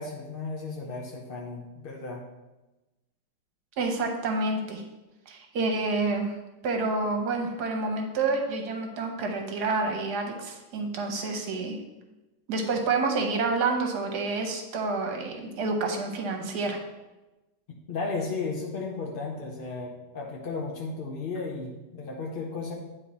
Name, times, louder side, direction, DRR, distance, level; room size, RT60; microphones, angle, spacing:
voice 1, 0.0-2.2 17.7-22.7, left 3 dB, 55° left, -1 dB, 0.6 m, -34 dB
voice 2, 3.8-4.8 5.3-6.3 6.6-11.8 12.5-16.8, right 3 dB, 70° right, 3 dB, 1.5 m, -28 dB
9.0 x 3.7 x 4.1 m, 1.1 s
omnidirectional pair, 1.9 m